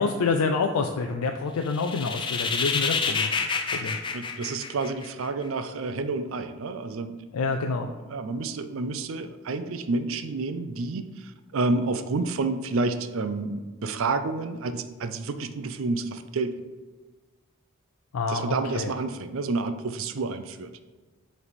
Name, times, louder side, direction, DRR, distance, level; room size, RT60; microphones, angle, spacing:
voice 1, 0.0-3.3 3.7-4.0 7.3-7.9 18.1-18.9, left 4 dB, 85° left, 4 dB, 0.4 m, -27 dB
sound 1, 1.7-5.3, left 5 dB, 20° left, 0.4 m, -28 dB
voice 2, 4.1-7.2 7.9-16.6 18.3-20.7, right 3 dB, 65° right, 10 dB, 0.4 m, -29 dB
7.1 x 3.4 x 4.1 m, 1.3 s
head